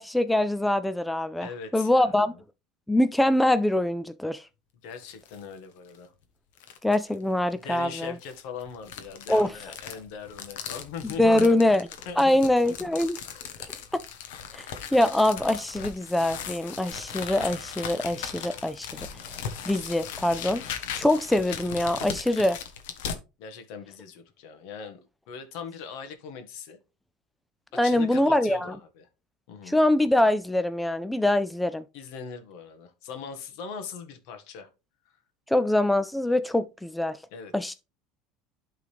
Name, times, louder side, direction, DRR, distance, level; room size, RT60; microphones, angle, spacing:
voice 1, 0.0-1.5 1.7-2.3 2.9-4.5 6.8-8.1 9.3-9.5 11.2-11.9 12.2-13.2 14.5-19.1 19.6-22.6 27.7-28.7 29.7-31.8 35.5-37.2 37.5-37.7, left 1 dB, 5° left, 0.3 m, -24 dB
voice 2, 1.4-2.4 4.8-6.1 7.6-11.6 12.0-12.4 13.6-13.7 14.5-14.7 23.4-25.0 25.3-26.8 27.8-29.1 29.5-29.8 31.9-34.7 35.0-35.2 37.3-37.7, left 6 dB, 70° left, 1.5 m, -40 dB
sound 1, 4.9-5.4 5.9-6.0 6.6-7.1 8.0-23.2, left 8 dB, 90° left, 1.1 m, -38 dB
sound 2, 16.9-21.9, left 1 dB, 25° left, 2.3 m, -52 dB
11.5 x 3.8 x 3.3 m
supercardioid pair, 135°, 0 cm